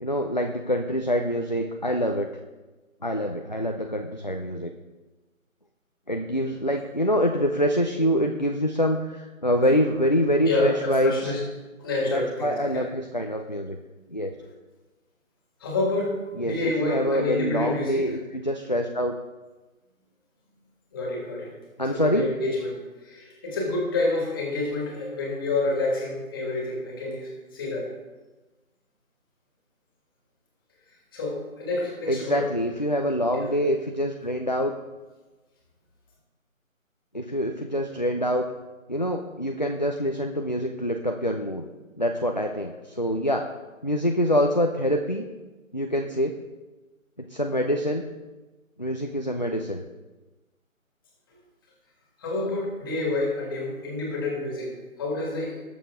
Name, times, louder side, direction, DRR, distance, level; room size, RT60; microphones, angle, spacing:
voice 1, 0.0-2.3 3.0-4.7 6.1-11.4 12.1-13.8 14.1-14.3 16.3-19.2 21.8-22.3 32.1-34.7 37.1-38.5 38.9-41.7 42.0-43.5 43.8-45.2 45.7-46.4 47.2-48.0 48.8-49.8, equal, 35° left, 3 dB, 0.5 m, -25 dB
voice 2, 10.5-11.4 11.8-12.8 15.6-18.0 20.9-21.5 21.9-22.8 23.0-27.9 31.1-32.4 33.3-33.5 52.2-55.6, left 2 dB, 15° left, -2 dB, 2.0 m, -28 dB
19.5 x 6.8 x 3.7 m, 1.2 s
figure-of-eight pair, 165°, 42 cm